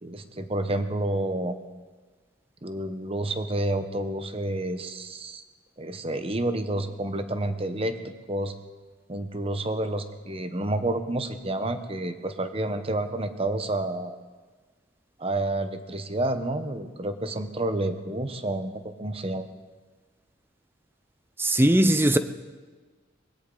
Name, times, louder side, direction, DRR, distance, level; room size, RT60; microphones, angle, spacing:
voice 1, 0.0-1.6 2.6-5.4 5.8-8.5 9.1-14.2 15.2-19.5, right 1 dB, 30° right, 0.9 m, -29 dB
voice 2, 21.4-22.2, right 1 dB, 10° right, 0.5 m, -19 dB
20.5 x 16.5 x 3.9 m
head